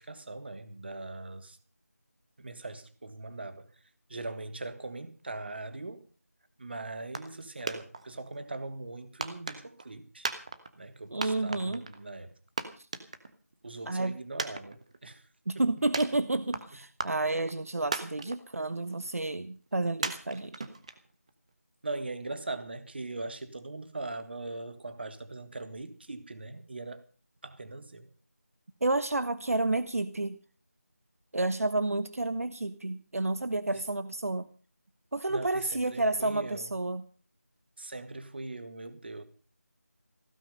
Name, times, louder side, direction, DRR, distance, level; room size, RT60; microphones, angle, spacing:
voice 1, 0.0-1.6 2.4-3.7 4.1-6.1 6.6-10.3 10.8-12.3 13.6-15.3 15.6-15.7 21.8-27.0 27.4-28.1 33.7-33.8 35.3-36.7 37.8-39.2, right 2 dB, 40° right, 1.7 m, -40 dB
sound 1, 7.1-7.4 7.7-8.4 9.2-9.9 10.2-10.9 11.2-12.0 12.3-12.4 12.6-13.5 13.8-13.9 14.4-15.2 15.9-16.6 17.0-17.6 17.9-18.6 19.0-19.1 20.0-21.3, right 3 dB, 25° right, 1.2 m, -35 dB
voice 2, 11.1-11.8 12.8-12.9 13.9-14.2 15.5-20.6 28.8-30.4 31.3-34.5 35.1-37.0, right 2 dB, 60° right, 1.2 m, -30 dB
16.0 x 14.5 x 5.4 m
figure-of-eight pair, 175°, 9 cm